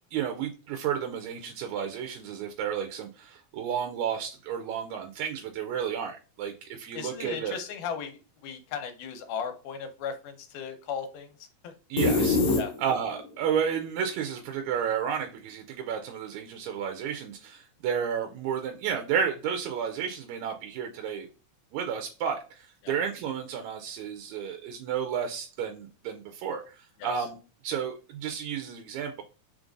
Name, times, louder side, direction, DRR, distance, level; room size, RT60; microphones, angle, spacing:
voice 1, 0.1-7.6 11.9-12.4 12.8-21.3 21.7-27.4 27.6-29.2, right 8 dB, 80° right, 4 dB, 1.8 m, -32 dB
voice 2, 6.9-11.7 12.6-12.7 22.8-22.9 27.0-27.1, left 7 dB, 90° left, 7 dB, 2.1 m, -36 dB
sound 1, 12.0-13.2, left 3 dB, 70° left, 1.3 m, -24 dB
5.1 x 3.2 x 2.5 m, 0.34 s
omnidirectional pair, 3.6 m